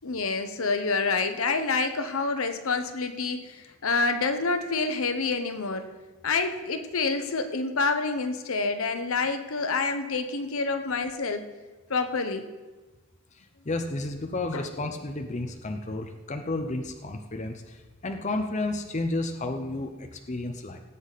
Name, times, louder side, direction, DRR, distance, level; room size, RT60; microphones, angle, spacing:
voice 1, 0.0-5.9 6.2-11.5 11.9-12.5 14.5-14.7, left 4 dB, 75° left, 8 dB, 0.9 m, -27 dB
voice 2, 13.4-17.8 18.0-20.8, left 2 dB, 35° left, 4 dB, 0.7 m, -32 dB
18.0 x 8.2 x 4.1 m, 1.2 s
head